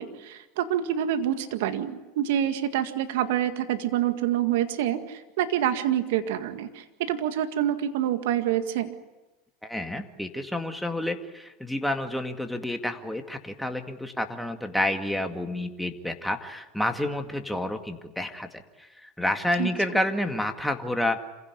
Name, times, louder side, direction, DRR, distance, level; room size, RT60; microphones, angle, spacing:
voice 1, 0.0-8.9 19.6-19.7, right 11 dB, 70° right, 8 dB, 1.9 m, -27 dB
voice 2, 9.6-21.2, left 1 dB, ahead, 5 dB, 2.2 m, -29 dB
27.0 x 16.0 x 9.8 m, 1.1 s
hypercardioid pair, 95°, 0 cm